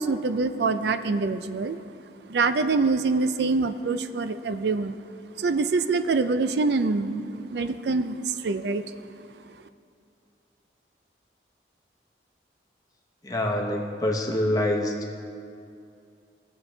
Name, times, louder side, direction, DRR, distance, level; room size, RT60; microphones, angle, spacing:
voice 1, 0.0-1.8 2.3-5.0 5.4-8.8, right 3 dB, 70° right, 10 dB, 0.4 m, -25 dB
voice 2, 13.2-14.9, left 1 dB, 20° left, 1 dB, 1.0 m, -25 dB
18.5 x 7.3 x 3.3 m, 2.4 s
head